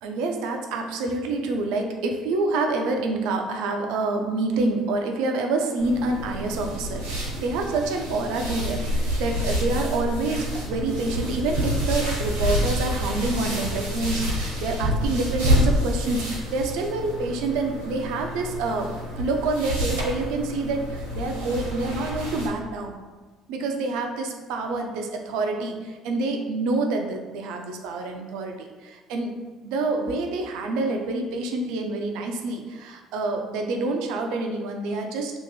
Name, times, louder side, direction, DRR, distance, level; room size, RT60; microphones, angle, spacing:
voice 1, 0.0-18.9 19.2-23.0 23.5-29.3 29.6-35.3, right 3 dB, 70° right, 3 dB, 0.4 m, -27 dB
sound 1, 5.8-22.5, equal, 85° right, 0.8 m, -28 dB
2.7 x 2.5 x 4.0 m, 1.3 s
hypercardioid pair, 55°, 0 cm